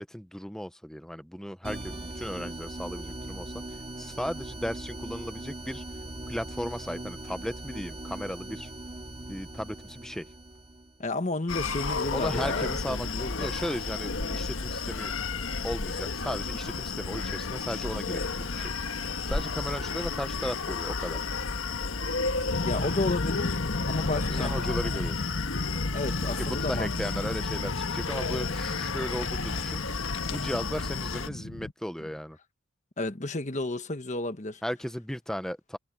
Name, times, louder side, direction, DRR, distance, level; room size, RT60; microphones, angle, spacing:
voice 1, 0.0-3.6 4.0-5.8 6.3-8.7 9.3-10.3 12.1-15.1 15.6-21.3 24.1-25.3 26.2-32.4 34.6-35.8, equal, 5° left, 0.7 m, -36 dB
sound 1, 1.6-11.0, right 1 dB, 30° right, 2.7 m, -40 dB
voice 2, 11.0-13.5 22.6-23.6 23.9-24.6 25.9-26.9 27.2-27.3 33.0-34.6, left 2 dB, 35° left, 1.4 m, -32 dB
Screaming, 11.5-31.3, left 4 dB, 90° left, 1.4 m, -32 dB
sound 2, 22.5-31.7, left 2 dB, 55° left, 1.1 m, -35 dB
head